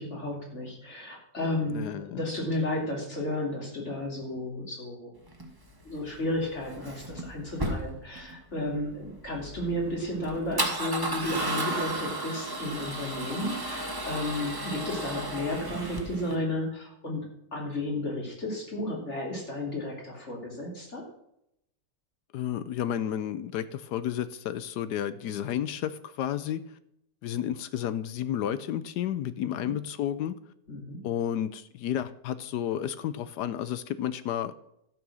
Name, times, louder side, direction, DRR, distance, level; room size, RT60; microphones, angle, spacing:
voice 1, 0.0-5.1 5.8-17.2 17.5-21.0 29.4-29.7 30.7-31.0, left 1 dB, 40° left, -1 dB, 3.4 m, -33 dB
voice 2, 1.7-2.2 22.3-26.6 27.2-30.4 31.0-34.5, left 10 dB, 75° left, 14 dB, 1.1 m, -31 dB
Male speech man speaking / Car / Engine starting, 5.3-16.4, right 1 dB, 15° right, 1.4 m, -34 dB
12.5 x 6.1 x 6.2 m, 0.78 s
omnidirectional pair, 2.0 m